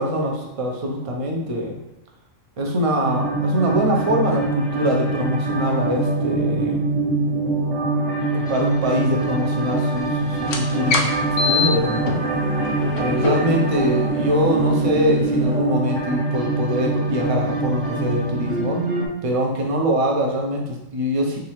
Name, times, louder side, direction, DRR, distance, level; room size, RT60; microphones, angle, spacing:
voice 1, 0.0-1.8 2.6-6.9 8.3-12.2 13.0-18.8 19.2-21.4, equal, 40° right, 0 dB, 0.5 m, -23 dB
sound 1, 3.0-19.1, right 2 dB, 65° right, 1.4 m, -23 dB
sound 2, 10.4-15.6, left 4 dB, 85° left, 1.0 m, -27 dB
3.7 x 3.2 x 3.1 m, 0.87 s
omnidirectional pair, 1.4 m